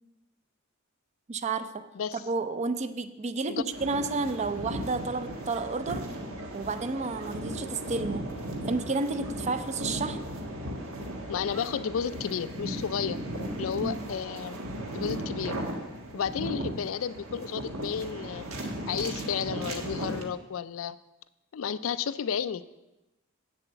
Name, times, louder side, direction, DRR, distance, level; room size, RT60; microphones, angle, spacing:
voice 1, 1.3-1.9 2.2-6.1 6.5-8.3 8.7-10.2 13.8-14.1, right 3 dB, 35° right, 0.5 m, -31 dB
sound 1, 3.7-20.2, right 1 dB, 85° right, 1.5 m, -36 dB
voice 2, 11.3-13.2 13.6-14.6 14.9-15.6 16.1-18.5 18.9-21.0 21.5-22.8, left 7 dB, 70° left, 0.4 m, -32 dB
8.3 x 6.9 x 7.0 m
head